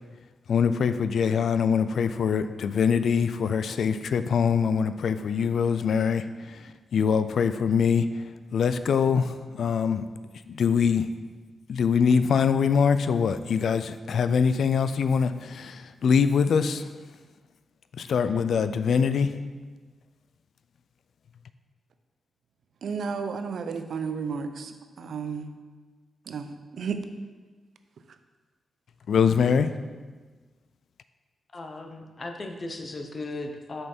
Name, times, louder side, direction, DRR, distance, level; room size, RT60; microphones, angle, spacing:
voice 1, 0.5-8.2 8.5-10.1 10.5-11.1 11.7-16.9 18.0-19.3 29.1-29.7, left 6 dB, 65° left, 12 dB, 0.3 m, -23 dB
voice 2, 22.8-25.5 26.3-27.0, right 5 dB, 65° right, 8 dB, 0.5 m, -33 dB
voice 3, 31.5-33.9, left 2 dB, 30° left, 4 dB, 0.6 m, -37 dB
6.7 x 5.5 x 4.3 m, 1.4 s
wide cardioid pair, 165°, 0 cm